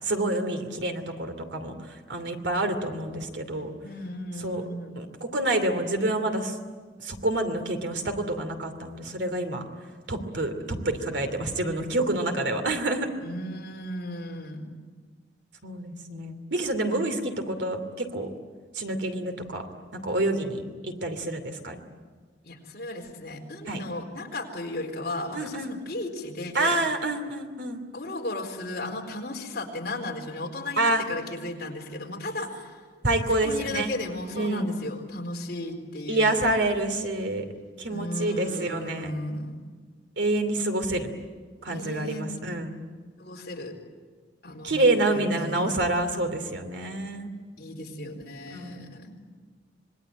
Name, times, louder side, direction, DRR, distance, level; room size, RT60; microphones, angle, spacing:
voice 1, 0.0-1.7 2.1-3.7 4.4-4.6 4.9-6.5 7.0-9.6 10.1-13.1 15.6-18.3 18.7-19.6 19.9-21.8 23.7-23.8 25.3-25.7 26.5-27.8 30.8-31.0 33.0-33.9 34.3-34.7 36.1-37.4 37.8-39.1 40.2-41.1 41.6-42.8 44.6-47.3 48.5-48.9, right 2 dB, 75° right, 6 dB, 2.7 m, -27 dB
voice 2, 3.8-5.1 13.2-14.8 22.4-26.8 27.9-32.8 33.3-36.5 37.9-39.7 41.7-42.4 43.2-43.8 44.4-44.7 45.1-45.7 47.6-49.1, left 1 dB, 55° left, 0 dB, 4.4 m, -35 dB
26.0 x 21.0 x 9.0 m, 1.5 s
head